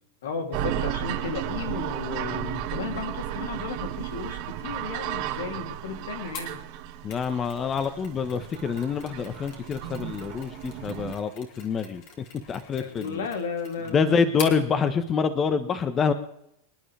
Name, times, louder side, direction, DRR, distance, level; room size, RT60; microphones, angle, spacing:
voice 1, 0.2-6.6 12.8-14.1 14.5-14.6, left 5 dB, 85° left, 4 dB, 3.0 m, -34 dB
sound 1, 0.5-11.1, right 12 dB, 55° right, 1.8 m, -34 dB
Mechanisms, 6.3-14.6, left 5 dB, 50° left, 3.4 m, -44 dB
voice 2, 7.0-13.3 13.9-16.1, left 6 dB, 25° left, 11 dB, 1.1 m, -26 dB
26.0 x 10.5 x 3.4 m, 0.77 s
supercardioid pair, 130°, 0 cm